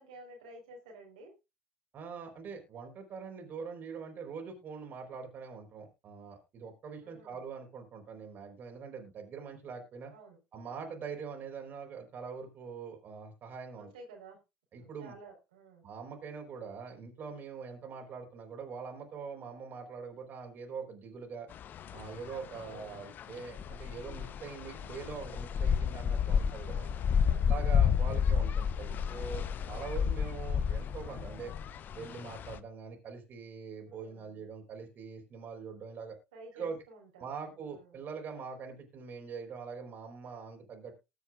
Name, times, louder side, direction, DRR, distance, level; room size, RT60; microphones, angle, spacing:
voice 1, 0.0-1.3 7.0-7.4 10.1-10.4 13.8-14.4 14.8-15.8 22.5-22.9 26.7-28.2 33.9-34.4 36.3-38.0, right 2 dB, 85° right, 0 dB, 4.5 m, -53 dB
voice 2, 1.9-10.1 10.5-13.9 14.7-15.1 15.8-21.5 21.9-26.8 27.5-31.5 31.9-36.2 36.5-36.8 37.2-40.9, right 5 dB, 50° right, 3 dB, 4.3 m, -43 dB
sound 1, 21.5-32.6, left 7 dB, 45° left, 0.8 m, -31 dB
20.5 x 7.1 x 2.5 m, 0.25 s
hypercardioid pair, 70°, 4 cm